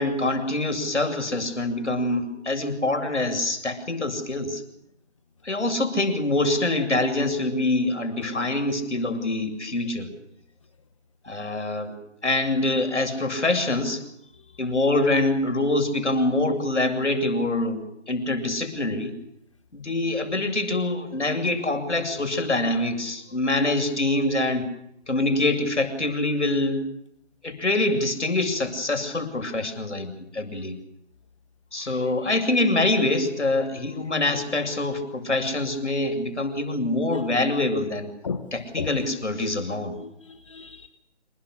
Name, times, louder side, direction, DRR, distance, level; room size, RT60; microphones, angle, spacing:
voice 1, 0.0-4.6 5.4-10.1 11.2-11.9 12.2-14.0 14.6-19.1 19.7-24.7 25.1-26.8 27.4-30.8 31.7-38.1 38.5-39.9, left 2 dB, 75° left, 6 dB, 7.8 m, -25 dB
voice 2, 31.8-32.1 37.1-37.2 38.2-38.4 38.8-38.9 40.0-40.9, left 5 dB, 25° left, 9 dB, 1.3 m, -35 dB
27.5 x 24.0 x 6.8 m, 0.78 s
figure-of-eight pair, 160°, 35 cm